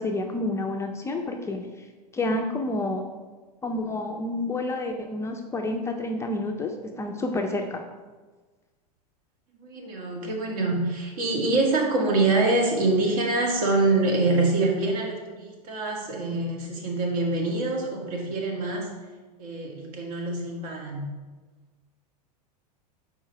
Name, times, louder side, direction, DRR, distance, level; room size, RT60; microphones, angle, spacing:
voice 1, 0.0-1.9 2.1-3.0 3.6-7.8, left 2 dB, 15° left, 3 dB, 0.4 m, -29 dB
voice 2, 9.6-18.9 19.4-21.1, right 2 dB, 60° right, 0 dB, 1.8 m, -25 dB
4.6 x 4.6 x 5.6 m, 1.3 s
hypercardioid pair, 120°, 21 cm